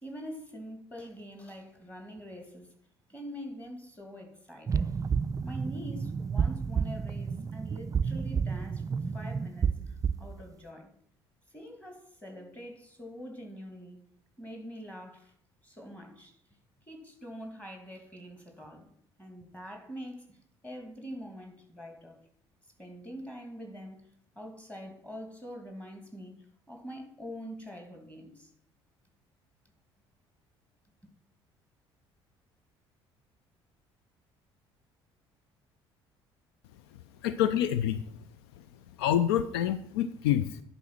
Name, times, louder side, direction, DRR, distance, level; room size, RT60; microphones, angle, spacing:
voice 1, 0.0-2.7 3.1-4.9 5.4-10.9 11.5-14.0 14.4-15.3 15.6-16.4 16.9-18.9 19.2-20.4 20.6-22.2 22.8-24.1 24.4-28.5, equal, 10° left, 2.5 m, -44 dB
sound 1, 4.7-10.3, right 6 dB, 25° right, 0.4 m, -31 dB
voice 2, 37.2-38.3 38.6-38.7 39.0-40.6, left 10 dB, 70° left, 0.4 m, -27 dB
10.5 x 4.1 x 6.1 m
figure-of-eight pair, 55°, 14 cm